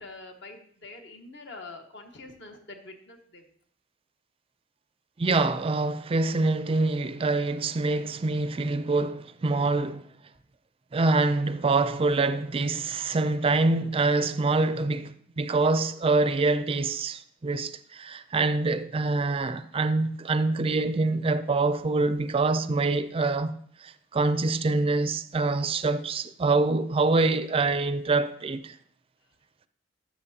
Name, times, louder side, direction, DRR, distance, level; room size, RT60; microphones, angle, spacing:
voice 1, 0.0-3.4, left 3 dB, 65° left, 1.3 m, -45 dB
voice 2, 5.2-10.0 10.9-23.6 23.8-28.7, right 3 dB, 30° right, 0.4 m, -25 dB
12.5 x 7.2 x 2.8 m
head